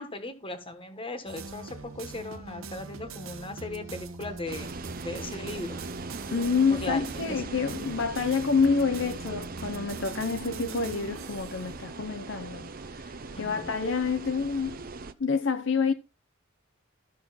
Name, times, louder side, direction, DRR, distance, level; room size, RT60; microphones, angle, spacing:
voice 1, 0.0-4.7 5.0-5.8 6.8-7.4 13.3-13.7, left 2 dB, 25° left, 1.5 m, -38 dB
sound 1, 1.3-15.1, right 3 dB, 75° right, 1.2 m, -43 dB
sound 2, 4.5-15.1, right 3 dB, 45° right, 0.7 m, -40 dB
voice 2, 6.3-12.7 13.0-14.8 15.2-15.9, left 5 dB, 65° left, 0.7 m, -28 dB
13.5 x 6.3 x 4.1 m
head